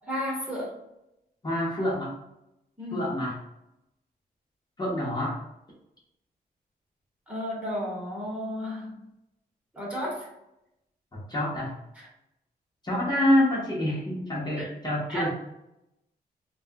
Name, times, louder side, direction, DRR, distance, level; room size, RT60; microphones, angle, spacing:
voice 1, 0.0-0.8 2.8-3.1 7.3-9.0 9.7-10.3 11.9-12.1 14.6-14.7 15.1-15.3, equal, 10° right, -5 dB, 1.1 m, -33 dB
voice 2, 1.4-2.1 2.9-3.4 4.8-5.4 11.3-11.7 12.8-15.3, left 1 dB, 25° left, -6 dB, 1.0 m, -26 dB
3.0 x 2.3 x 2.8 m, 0.87 s
wide cardioid pair, 115°, 16 cm